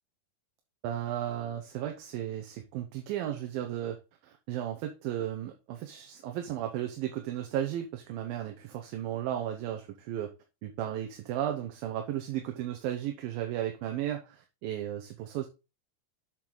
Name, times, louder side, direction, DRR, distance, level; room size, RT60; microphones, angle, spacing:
voice 1, 0.8-10.3 10.6-15.5, right 11 dB, 80° right, 2.7 m, -35 dB
7.4 x 6.6 x 3.9 m
omnidirectional pair, 4.1 m